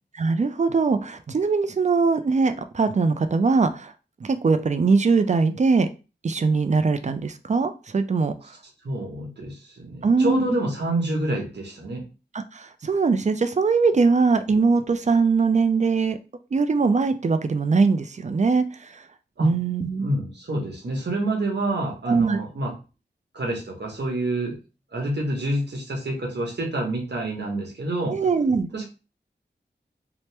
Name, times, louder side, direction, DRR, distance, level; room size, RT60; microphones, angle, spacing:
voice 1, 0.1-3.9 4.2-5.9 6.2-8.3 10.0-10.6 12.3-16.2 16.5-19.0 19.4-20.1 22.1-22.4 28.1-28.7, right 4 dB, 40° right, 10 dB, 0.4 m, -21 dB
voice 2, 8.8-12.0 19.4-19.5 20.0-22.7 23.3-24.5 24.9-28.2 28.7-28.9, right 1 dB, 70° right, 0 dB, 1.0 m, -27 dB
2.8 x 2.1 x 3.2 m, 0.32 s
wide cardioid pair, 50°, 18 cm